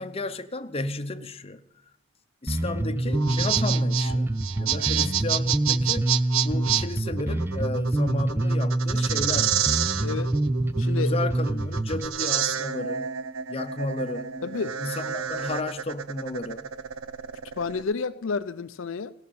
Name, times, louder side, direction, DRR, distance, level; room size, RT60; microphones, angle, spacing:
voice 1, 0.0-1.6 2.4-6.2 6.4-9.7 11.0-13.1 13.5-14.3 14.8-16.7, left 2 dB, 30° left, 0.8 m, -33 dB
Bass guitar, 2.5-12.1, right 1 dB, 10° right, 0.5 m, -26 dB
sound 1, 3.1-17.8, right 10 dB, 80° right, 0.7 m, -29 dB
voice 2, 10.0-10.4 10.8-11.1 14.4-14.8 17.5-19.1, left 5 dB, 70° left, 0.5 m, -30 dB
16.5 x 6.4 x 8.4 m
head